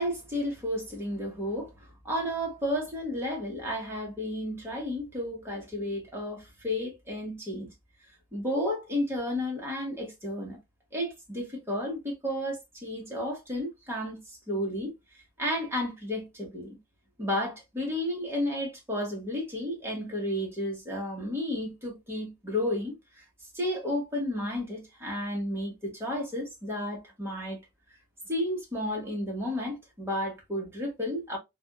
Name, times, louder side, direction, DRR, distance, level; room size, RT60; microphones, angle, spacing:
voice 1, 0.0-7.7 8.3-10.6 10.9-16.7 17.2-23.2 23.5-27.6 28.3-31.4, left 1 dB, 10° right, 1.1 m, -32 dB
3.4 x 2.4 x 2.2 m
head